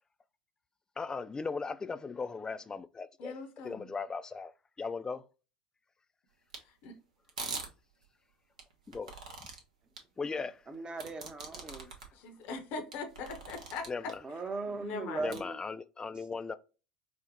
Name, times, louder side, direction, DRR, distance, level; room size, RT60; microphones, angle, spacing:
voice 1, 1.0-3.3 3.6-4.5 4.8-5.2 8.9-9.1 10.2-10.6 13.9-14.2 15.2-16.5, left 4 dB, 20° left, 0.3 m, -37 dB
voice 2, 3.2-3.9 6.8-7.0 12.1-14.1 14.7-15.4, left 4 dB, 50° left, 0.7 m, -41 dB
sound 1, 6.5-6.6 7.3-7.7 8.6-9.6 10.0-10.1 11.0-12.1 12.5-12.6 12.9-14.1 15.3-15.4, right 4 dB, 75° right, 0.7 m, -42 dB
voice 3, 10.7-11.9 14.2-15.6, right 3 dB, 25° right, 0.6 m, -38 dB
4.2 x 2.1 x 2.6 m
figure-of-eight pair, 70°, 4 cm